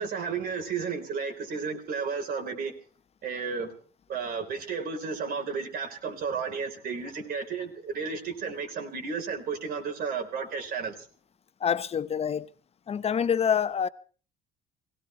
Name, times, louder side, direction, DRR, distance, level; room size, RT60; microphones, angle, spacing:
voice 1, 0.0-2.7 3.2-3.7 4.1-11.1, right 5 dB, 60° right, 3.8 m, -33 dB
voice 2, 11.6-12.5 12.9-13.9, left 7 dB, 35° left, 0.9 m, -26 dB
17.0 x 17.0 x 4.4 m
cardioid pair, 110°, 17 cm